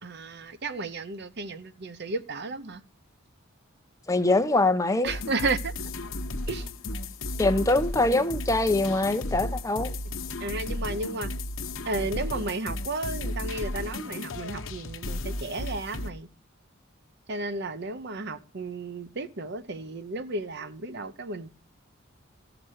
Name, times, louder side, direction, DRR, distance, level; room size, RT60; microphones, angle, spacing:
voice 1, 0.0-2.8 5.0-5.9 6.5-6.7 10.4-11.3 11.9-16.3 17.3-21.5, right 3 dB, 55° right, 0.8 m, -33 dB
voice 2, 4.1-5.1 7.4-9.9, left 2 dB, 15° left, 0.7 m, -23 dB
sound 1, 5.0-16.1, left 2 dB, 80° left, 1.0 m, -34 dB
15.0 x 6.0 x 6.4 m
head